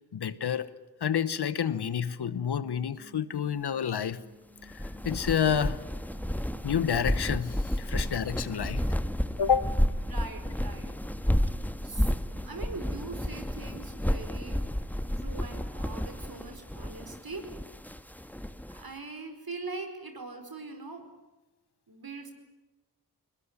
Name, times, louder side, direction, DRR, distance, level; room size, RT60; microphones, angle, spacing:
voice 1, 0.1-0.7 1.0-4.2 4.6-5.8 6.6-8.9 9.4-9.7, left 8 dB, 85° left, 1.0 m, -29 dB
sound 1, 2.2-15.1, equal, 85° right, 6.1 m, -57 dB
sound 2, 4.6-18.8, equal, 5° left, 1.5 m, -31 dB
voice 2, 10.1-11.0 11.4-11.5 11.8-14.6 15.1-17.5 18.7-21.1 21.9-22.3, right 3 dB, 65° right, 4.9 m, -42 dB
21.5 x 21.0 x 9.7 m
cardioid pair, 40°, 39 cm